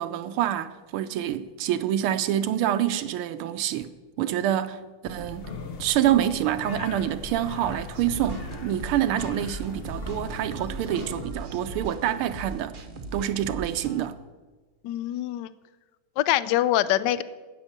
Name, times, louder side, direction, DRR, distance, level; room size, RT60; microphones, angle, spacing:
voice 1, 0.0-3.9 4.2-5.5 5.8-12.8 13.1-14.2, right 11 dB, 80° right, 1.5 m, -27 dB
sound 1, 5.0-11.2, left 3 dB, 50° left, 0.7 m, -39 dB
sound 2, 7.9-14.0, right 3 dB, 60° right, 0.5 m, -39 dB
voice 2, 14.8-15.5 16.2-17.2, left 13 dB, 75° left, 1.0 m, -24 dB
12.0 x 8.7 x 7.3 m
omnidirectional pair, 2.4 m